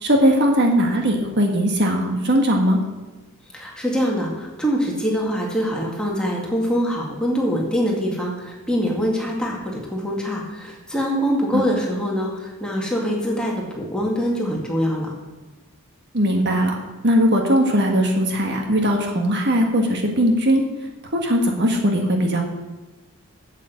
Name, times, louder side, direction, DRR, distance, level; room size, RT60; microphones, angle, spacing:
voice 1, 0.0-2.8 11.5-11.6 16.1-16.8 17.0-20.6 21.1-22.4, equal, 50° right, 2 dB, 1.6 m, -19 dB
voice 2, 3.5-9.6 9.9-15.1, equal, 5° left, -2 dB, 2.2 m, -24 dB
8.5 x 8.3 x 8.3 m, 1.2 s
head